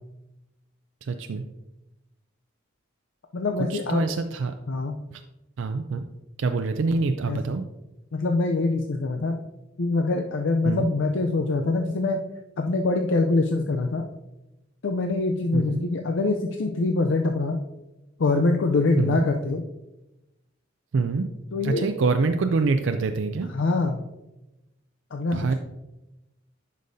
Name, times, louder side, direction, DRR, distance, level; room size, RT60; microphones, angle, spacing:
voice 1, 1.0-1.4 3.7-4.5 5.6-6.1 6.4-7.6 10.6-10.9 15.5-15.8 19.0-19.2 20.9-21.3 21.6-23.5 25.3-25.5, right 4 dB, 70° right, 7 dB, 0.4 m, -25 dB
voice 2, 3.3-4.0 4.7-5.0 7.3-7.4 8.1-9.4 9.8-12.2 12.6-14.1 14.8-17.6 18.2-19.6 21.5-21.9 23.5-24.1 25.1-25.5, left 3 dB, 70° left, 4 dB, 0.5 m, -24 dB
10.5 x 5.2 x 2.7 m, 0.98 s
head